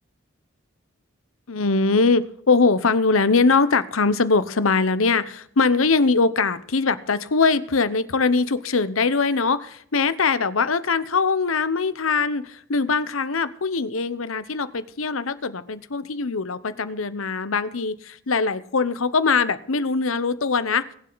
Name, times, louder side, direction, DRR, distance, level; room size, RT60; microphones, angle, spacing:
voice 1, 1.5-20.9, left 4 dB, 90° left, 14 dB, 0.9 m, -22 dB
22.5 x 7.7 x 4.0 m, 0.64 s
head